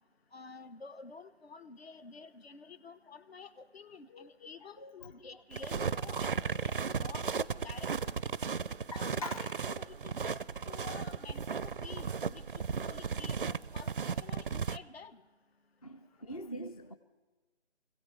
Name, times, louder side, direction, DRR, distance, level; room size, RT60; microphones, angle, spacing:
voice 1, 0.3-6.3 6.6-8.2 8.9-12.4 12.8-15.2, left 5 dB, 60° left, 13 dB, 1.1 m, -50 dB
voice 2, 4.1-5.1 6.8-6.9 8.9-9.6 15.8-16.9, left 1 dB, 30° left, 7 dB, 0.6 m, -44 dB
sound 1, 5.5-14.8, right 6 dB, 50° right, 0.4 m, -35 dB
25.0 x 16.5 x 3.3 m, 1.2 s
figure-of-eight pair, 165°, 35 cm